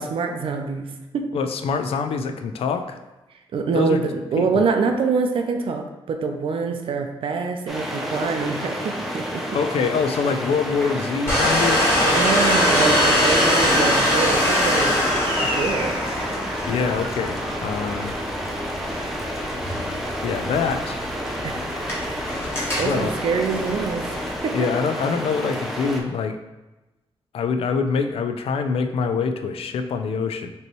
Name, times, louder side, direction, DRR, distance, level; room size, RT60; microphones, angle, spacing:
voice 1, 0.0-1.3 3.5-9.6 12.1-15.0 15.3-16.3 21.4-21.8 22.8-24.2 24.4-24.6, right 5 dB, 65° right, 5 dB, 0.5 m, -25 dB
voice 2, 1.3-3.0 3.7-4.0 4.4-4.7 9.5-12.0 16.6-18.1 20.2-21.1 22.2-23.2 24.5-26.4 27.3-30.5, left 5 dB, 80° left, 8 dB, 0.4 m, -25 dB
sound 1, 7.7-26.0, equal, ahead, 0.6 m, -30 dB
Domestic sounds home sounds, 11.3-24.4, left 1 dB, 25° left, 1.3 m, -23 dB
5.4 x 3.0 x 3.0 m, 1.1 s
wide cardioid pair, 155°, 10 cm